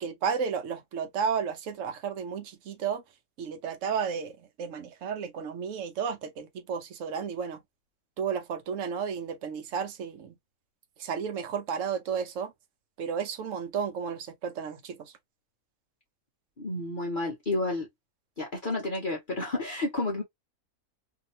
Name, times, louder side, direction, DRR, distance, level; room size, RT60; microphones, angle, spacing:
voice 1, 0.0-3.0 3.4-4.3 4.6-7.6 8.2-10.4 11.0-12.5 13.0-15.1, right 6 dB, 65° right, 1.1 m, -32 dB
voice 2, 16.6-17.9 18.4-20.2, left 2 dB, 40° left, 0.9 m, -31 dB
2.8 x 2.8 x 2.7 m
omnidirectional pair, 1.5 m